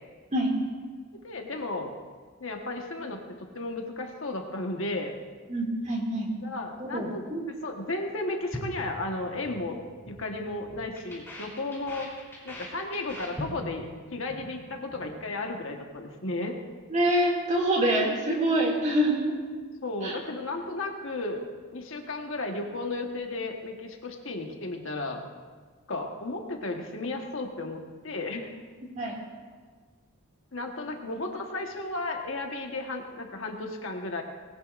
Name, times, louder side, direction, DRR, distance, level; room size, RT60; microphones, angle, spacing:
voice 1, 1.2-1.9 2.4-5.1 6.4-7.2 7.6-9.8 10.1-12.1 12.4-13.8 14.1-16.6 19.8-21.4 21.7-25.2 25.9-28.5 30.5-34.2, left 2 dB, 60° left, 2 dB, 1.3 m, -34 dB
voice 2, 5.5-6.3 6.8-7.4 16.9-19.2 20.0-20.2 29.0-29.2, right 1 dB, 30° right, -1 dB, 2.4 m, -26 dB
sound 1, 8.5-9.6 9.9-10.2 10.5-13.9 14.1-14.5 14.7-15.1, left 1 dB, 10° left, 3.4 m, -41 dB
19.0 x 17.0 x 2.5 m, 1.5 s
head